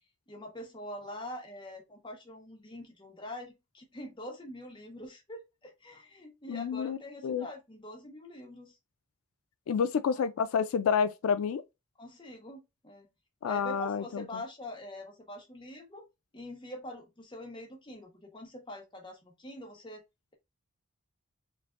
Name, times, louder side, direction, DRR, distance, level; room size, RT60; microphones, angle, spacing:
voice 1, 0.3-8.7 10.1-10.2 12.0-13.1 13.5-16.1 16.3-20.0, left 1 dB, 25° left, 1.0 m, -44 dB
voice 2, 6.5-7.0 7.2-7.5 9.7-11.6 13.4-14.4, left 6 dB, 85° left, 0.4 m, -29 dB
4.7 x 2.6 x 2.4 m
head